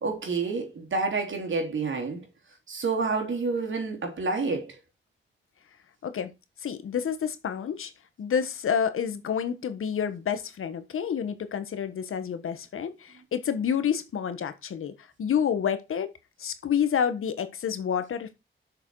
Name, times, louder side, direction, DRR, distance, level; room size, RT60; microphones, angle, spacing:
voice 1, 0.0-2.2 2.7-4.8, right 4 dB, 70° right, 3.6 m, -29 dB
voice 2, 6.6-7.9 8.2-14.9 15.2-16.1 16.4-18.3, left 8 dB, 90° left, 1.4 m, -29 dB
7.0 x 6.6 x 4.8 m
cardioid pair, 75°, 21 cm